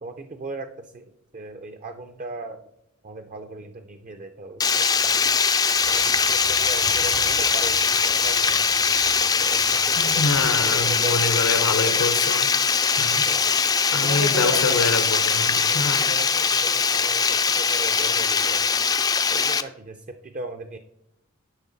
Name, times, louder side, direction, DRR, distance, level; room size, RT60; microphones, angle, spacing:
voice 1, 0.0-2.6 3.0-5.3 5.9-8.7 9.4-12.1 13.0-13.4 13.9-15.1 15.7-18.7 19.3-20.8, right 2 dB, 35° right, 8 dB, 0.5 m, -36 dB
Water, 4.6-19.6, left 6 dB, 20° left, 0.3 m, -21 dB
sound 1, 5.7-10.9, right 4 dB, 80° right, 2.5 m, -38 dB
voice 2, 10.0-12.5 13.0-13.3 13.9-16.0, left 3 dB, 85° left, 10 dB, 0.8 m, -26 dB
11.0 x 5.7 x 4.0 m, 0.80 s
head